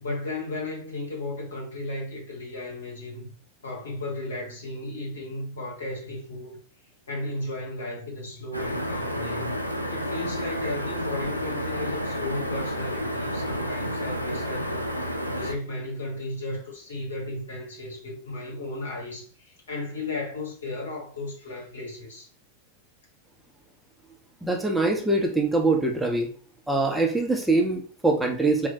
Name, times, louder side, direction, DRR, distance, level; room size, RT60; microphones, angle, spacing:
voice 1, 0.0-3.3 3.6-6.6 7.1-9.6 9.9-14.9 15.3-22.3, left 2 dB, 65° left, 1.3 m, -35 dB
sound 1, 8.5-15.5, equal, 90° right, 0.4 m, -30 dB
voice 2, 24.4-26.3 26.7-28.7, right 2 dB, 5° right, 0.6 m, -23 dB
4.3 x 2.1 x 2.8 m
figure-of-eight pair, 90°, 0 cm